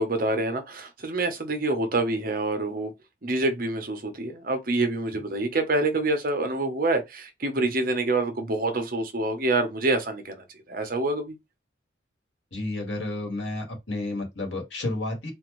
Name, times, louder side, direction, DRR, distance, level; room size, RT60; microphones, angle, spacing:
voice 1, 0.0-2.9 3.2-11.4, right 2 dB, 50° right, 1.0 m, -26 dB
voice 2, 12.5-15.3, left 2 dB, 80° left, 1.8 m, -31 dB
4.3 x 2.5 x 3.1 m
head